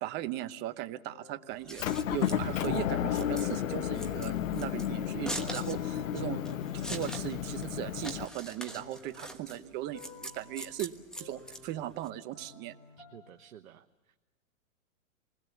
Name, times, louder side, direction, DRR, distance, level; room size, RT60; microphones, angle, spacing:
voice 1, 0.0-10.9 11.2-12.7, right 14 dB, 25° right, 11 dB, 0.8 m, -38 dB
sound 1, 1.0-3.3 3.7-13.4, left 4 dB, 30° left, 5.8 m, -54 dB
Scissors, 1.5-12.1, right 1 dB, ahead, 1.3 m, -43 dB
Motor vehicle (road) / Engine, 1.8-8.3, left 10 dB, 70° left, 1.0 m, -32 dB
voice 2, 13.0-14.2, right 10 dB, 75° right, 5 dB, 1.1 m, -53 dB
27.0 x 20.5 x 7.1 m, 1.2 s
hypercardioid pair, 140°, 41 cm